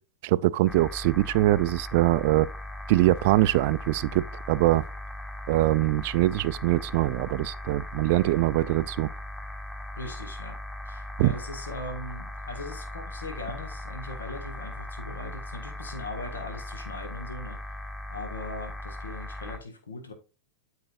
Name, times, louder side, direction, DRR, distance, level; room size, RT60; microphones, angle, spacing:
voice 1, 0.2-2.5 2.9-4.8 5.5-9.1 11.2-11.3, right 17 dB, 50° right, 0.4 m, -23 dB
sound 1, 0.7-19.6, left 1 dB, 10° left, 1.4 m, -38 dB
voice 2, 9.9-10.6 10.8-17.8 18.1-20.1, left 2 dB, 70° left, 1.5 m, -39 dB
12.5 x 4.8 x 2.5 m
figure-of-eight pair, 90°, 0 cm